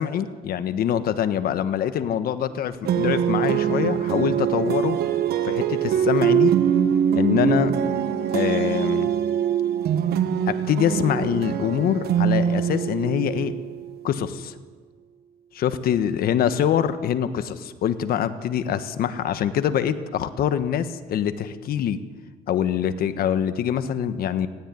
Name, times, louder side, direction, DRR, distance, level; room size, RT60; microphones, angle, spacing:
voice 1, 0.0-5.0 5.4-6.6 7.1-7.7 8.3-9.1 10.5-13.5 14.0-14.5 15.5-22.0 22.5-24.5, left 9 dB, 65° left, 11 dB, 1.4 m, -24 dB
sound 1, 2.9-14.0, right 9 dB, 70° right, 1.4 m, -23 dB
18.0 x 16.0 x 9.6 m, 1.4 s
cardioid pair, 110°, 17 cm